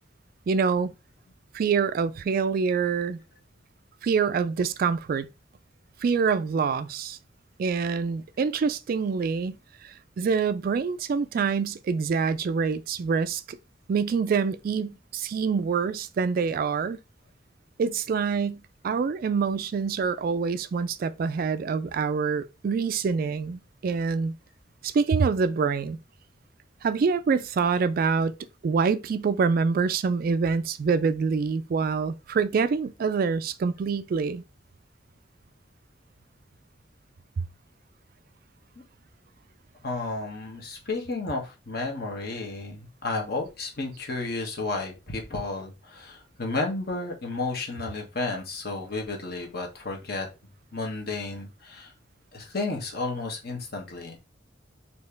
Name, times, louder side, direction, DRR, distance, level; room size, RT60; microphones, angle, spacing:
voice 1, 0.5-0.9 1.5-3.2 4.0-5.3 6.0-7.2 7.6-9.6 9.8-13.6 13.9-17.0 17.8-24.3 24.8-26.0 26.8-28.3 28.6-34.4, right 5 dB, 50° right, 0.3 m, -26 dB
voice 2, 39.8-50.3 50.7-51.9 52.3-54.2, left 3 dB, 55° left, 1.2 m, -32 dB
4.3 x 2.8 x 3.2 m
head